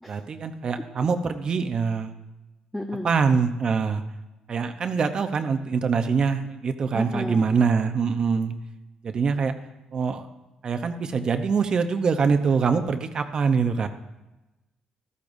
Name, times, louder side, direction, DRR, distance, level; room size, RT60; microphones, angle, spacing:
voice 1, 0.1-2.1 3.0-4.0 4.5-8.5 9.0-9.5 9.9-10.3 10.6-13.9, right 5 dB, 40° right, 8 dB, 0.8 m, -24 dB
voice 2, 2.7-3.1 6.9-7.5, left 1 dB, 5° left, 2 dB, 0.8 m, -32 dB
14.0 x 13.5 x 2.7 m, 1.0 s
cardioid pair, 130°, 2 cm